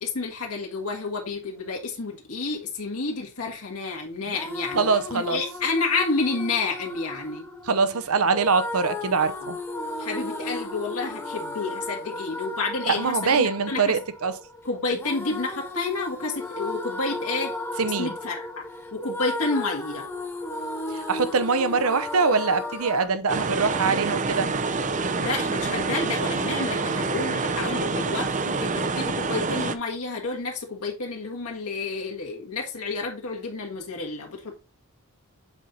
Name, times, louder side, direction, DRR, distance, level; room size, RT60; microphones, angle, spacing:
voice 1, 0.0-7.5 10.0-13.9 14.6-17.5 18.0-18.6 18.9-20.1 25.1-34.6, left 3 dB, 75° left, 2.0 m, -30 dB
sound 1, 4.2-23.1, left 2 dB, 10° left, 1.3 m, -35 dB
voice 2, 4.8-5.4 7.7-9.6 12.8-14.4 17.8-18.1 20.9-24.5, right 4 dB, 70° right, 0.8 m, -23 dB
sound 2, 23.3-29.8, right 4 dB, 35° right, 0.6 m, -27 dB
8.0 x 4.3 x 3.9 m
head